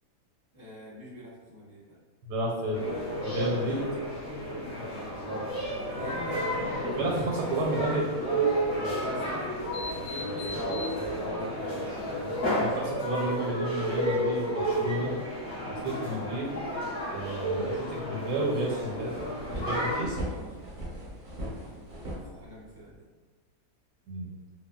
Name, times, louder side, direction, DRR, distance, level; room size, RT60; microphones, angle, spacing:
voice 1, 0.5-1.8 5.8-6.8 7.3-8.1 8.9-12.0 18.6-18.9 19.4-19.7 20.2-20.7 21.3-23.0, left 1 dB, 15° left, -11 dB, 0.9 m, -46 dB
voice 2, 2.2-2.8 3.2-3.8 7.0-8.1 12.5-15.1 15.8-16.5 17.1-19.1 19.6-20.2 24.1-24.3, right 1 dB, 85° right, -2 dB, 1.2 m, -31 dB
sound 1, 2.6-11.3, left 3 dB, 75° left, 1.3 m, -46 dB
sound 2, 2.7-20.0, right 1 dB, 45° left, 1.0 m, -32 dB
sound 3, 18.9-22.9, right 1 dB, 45° right, 0.6 m, -39 dB
3.2 x 2.1 x 2.2 m, 1.3 s
omnidirectional pair, 1.7 m